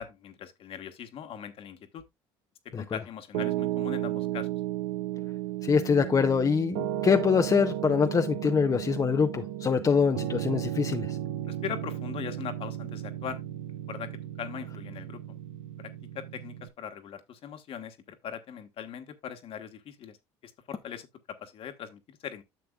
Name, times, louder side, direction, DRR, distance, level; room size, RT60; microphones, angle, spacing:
voice 1, 0.0-2.0 2.8-4.5 11.5-13.4 13.9-14.1 14.4-15.2 15.8-15.9 16.1-20.2 20.4-21.1 21.4-22.4, left 8 dB, 55° left, 1.4 m, -40 dB
Piano, 3.3-16.7, right 13 dB, 90° right, 0.8 m, -34 dB
voice 2, 5.6-11.2, left 6 dB, 30° left, 0.7 m, -24 dB
10.5 x 6.8 x 2.4 m
supercardioid pair, 80°, 11 cm